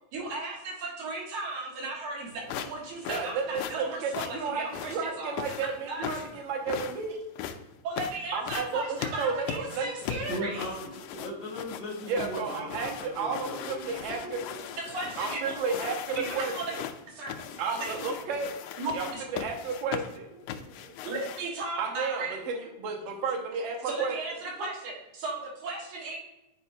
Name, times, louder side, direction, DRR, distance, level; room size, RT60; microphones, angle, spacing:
voice 1, 0.1-5.6 5.9-6.1 7.8-10.8 14.9-15.6 16.1-16.7 17.1-18.1 18.8-19.2 20.6-22.4 23.9-26.2, right 3 dB, 80° right, -3 dB, 3.1 m, -36 dB
sound 1, 2.5-21.6, left 10 dB, 80° left, 1.9 m, -39 dB
voice 2, 3.1-7.2 8.3-9.9 12.1-14.4 15.2-16.8 17.6-18.6 18.9-20.3 21.8-24.2, right 5 dB, 60° right, 2 dB, 1.3 m, -32 dB
voice 3, 10.3-14.7, equal, 50° left, -2 dB, 1.0 m, -38 dB
8.9 x 4.8 x 2.7 m, 0.95 s
omnidirectional pair, 3.4 m